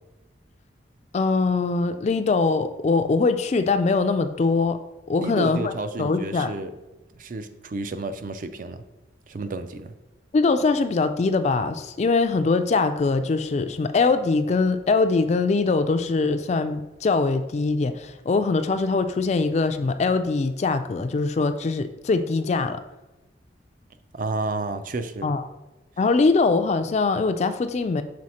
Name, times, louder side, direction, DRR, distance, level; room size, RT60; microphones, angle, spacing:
voice 1, 1.1-4.8 5.1-5.7 6.0-6.5 10.3-22.8 25.2-25.4 26.0-28.0, left 3 dB, 35° left, 10 dB, 0.3 m, -22 dB
voice 2, 5.2-6.7 7.2-8.8 9.3-9.9 24.1-25.4, right 2 dB, 45° right, 10 dB, 0.4 m, -31 dB
6.2 x 4.1 x 4.2 m, 1.0 s
head